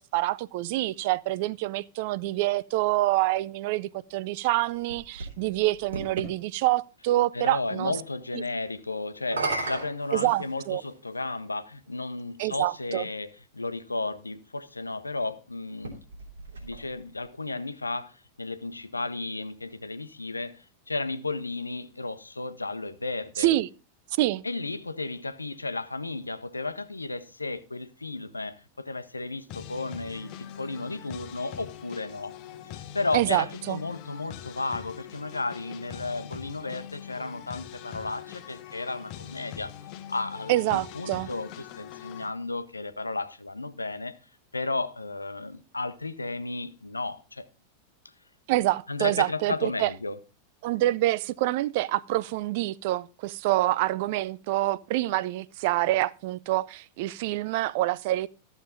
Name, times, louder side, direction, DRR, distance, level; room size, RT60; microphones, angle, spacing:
voice 1, 0.0-7.9 10.1-10.8 12.4-13.0 23.4-23.7 24.2-24.4 33.1-33.8 40.5-41.3 48.5-49.9 50.6-58.3, right 16 dB, 50° right, 0.4 m, -26 dB
sound 1, 4.5-6.3 9.1-10.9 11.9-12.0 15.7-17.2, right 3 dB, 75° right, 2.9 m, -35 dB
voice 2, 7.3-16.0 16.6-23.5 24.4-32.3 32.6-39.7 40.1-44.1 44.5-47.5 48.9-50.2, left 3 dB, 80° left, 0.8 m, -34 dB
sound 2, 29.5-42.3, left 10 dB, 40° left, 0.9 m, -43 dB
14.0 x 7.1 x 3.9 m
figure-of-eight pair, 90°, 0 cm